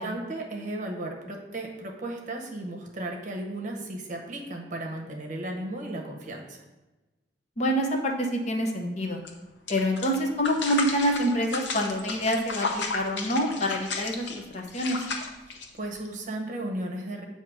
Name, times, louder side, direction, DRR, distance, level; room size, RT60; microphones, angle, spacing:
voice 1, 0.0-6.6 15.5-17.2, right 1 dB, 45° right, 1 dB, 0.8 m, -35 dB
voice 2, 7.6-9.2 9.7-15.0, equal, 40° left, 2 dB, 0.7 m, -27 dB
sound 1, 9.2-9.3 9.7-16.1, left 4 dB, 90° left, 0.8 m, -33 dB
7.5 x 2.8 x 4.7 m, 1.1 s
head